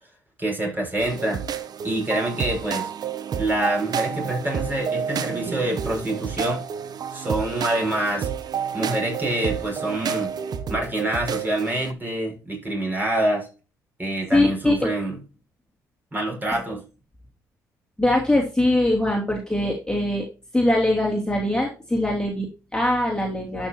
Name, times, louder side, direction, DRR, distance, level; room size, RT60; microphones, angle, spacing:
voice 1, 0.4-1.4 1.8-2.9 3.4-6.6 7.1-8.3 8.7-10.3 10.7-13.5 14.0-15.2 16.1-16.8, right 1 dB, 20° right, 0 dB, 5.6 m, -26 dB
sound 1, 1.0-11.9, right 7 dB, 50° right, 0.9 m, -30 dB
voice 2, 14.3-14.9 18.0-20.3 20.5-23.7, left 1 dB, 10° left, -2 dB, 2.8 m, -22 dB
12.5 x 6.2 x 2.9 m, 0.32 s
hypercardioid pair, 50°, 9 cm